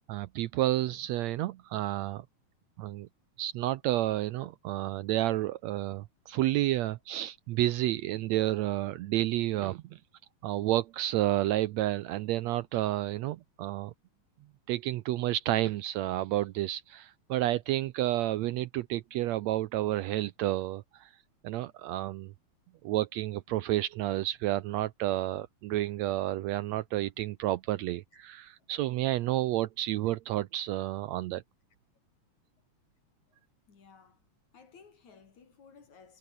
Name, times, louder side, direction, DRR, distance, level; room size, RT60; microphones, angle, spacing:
voice 1, 0.1-2.3 2.8-3.1 3.4-10.0 10.4-13.9 14.7-21.1 21.4-22.3 22.8-31.4, right 15 dB, 75° right, 1.8 m, -30 dB
voice 2, 33.7-34.2 34.5-36.2, left 5 dB, 75° left, 5.2 m, -56 dB
omnidirectional pair, 3.4 m